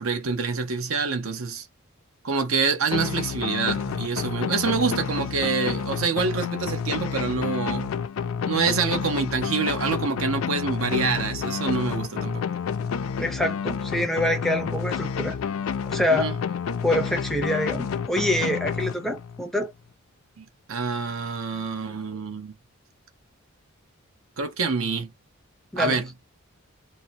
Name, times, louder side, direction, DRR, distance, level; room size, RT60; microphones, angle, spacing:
voice 1, 0.0-1.6 2.2-7.9 8.5-12.4 16.1-16.4 20.4-22.5 24.4-25.1 25.8-26.1, right 4 dB, 80° right, 0.8 m, -26 dB
sound 1, 2.9-19.4, left 6 dB, 75° left, 0.3 m, -29 dB
voice 2, 13.2-15.4 15.9-16.3 16.8-19.7 25.7-26.0, left 1 dB, ahead, 0.5 m, -25 dB
2.7 x 2.0 x 2.7 m
head